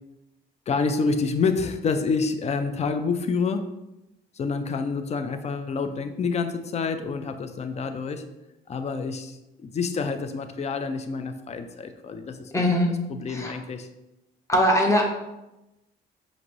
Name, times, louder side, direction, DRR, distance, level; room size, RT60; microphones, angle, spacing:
voice 1, 0.7-3.6 4.3-8.2 8.7-12.5 13.1-13.9, left 4 dB, 35° left, 8 dB, 0.4 m, -28 dB
voice 2, 12.5-12.9 13.3-13.6 14.5-15.0, equal, 15° left, 0 dB, 0.9 m, -21 dB
5.1 x 2.6 x 3.0 m, 0.95 s
cardioid pair, 90°, 20 cm